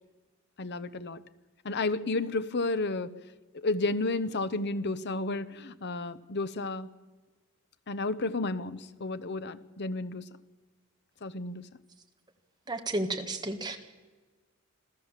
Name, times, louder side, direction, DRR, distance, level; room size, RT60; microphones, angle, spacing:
voice 1, 0.6-1.2 1.6-3.1 3.5-6.9 7.9-10.3 11.2-11.7, left 2 dB, 50° left, 14 dB, 0.8 m, -32 dB
voice 2, 12.7-13.8, right 2 dB, 20° right, 5 dB, 1.7 m, -32 dB
27.0 x 14.5 x 7.4 m, 1.3 s
head